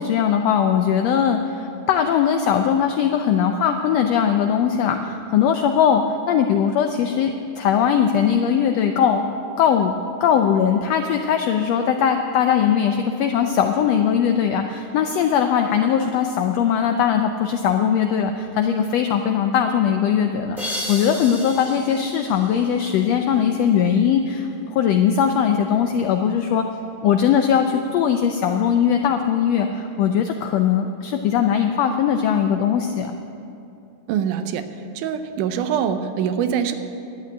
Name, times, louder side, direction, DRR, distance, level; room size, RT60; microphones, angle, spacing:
voice 1, 0.0-6.0 6.3-9.2 9.6-9.9 10.2-26.6 27.0-33.2, left 8 dB, 80° left, 5 dB, 1.5 m, -20 dB
sound 1, 20.6-23.3, left 1 dB, ahead, 2.1 m, -33 dB
voice 2, 34.1-34.7 35.0-36.7, right 8 dB, 90° right, 9 dB, 2.2 m, -23 dB
11.5 x 8.4 x 8.9 m, 2.7 s
omnidirectional pair, 3.5 m